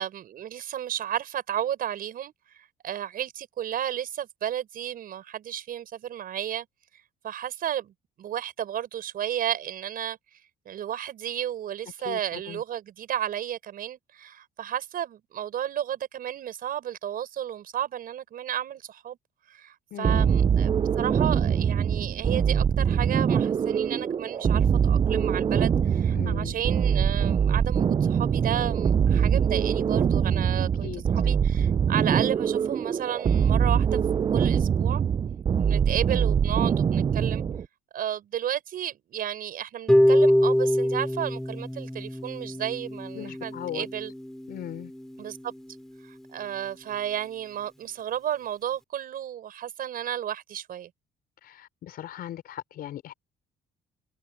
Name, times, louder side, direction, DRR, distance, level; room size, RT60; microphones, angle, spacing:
voice 1, 0.0-6.7 7.2-7.9 8.2-10.2 10.6-19.2 19.5-20.7 21.0-34.0 34.3-35.0 35.6-37.4 37.9-44.1 45.2-45.5 46.0-50.9, right 10 dB, 60° right, 6.3 m, -33 dB
voice 2, 12.0-12.6 19.9-20.3 26.1-26.6 30.8-31.0 43.2-43.9 44.5-44.9 51.4-53.1, left 12 dB, 65° left, 5.3 m, -38 dB
sound 1, 20.0-37.7, right 7 dB, 25° right, 0.3 m, -23 dB
Harp, 39.9-45.9, equal, 5° left, 2.6 m, -25 dB
cardioid pair, 110°, 17 cm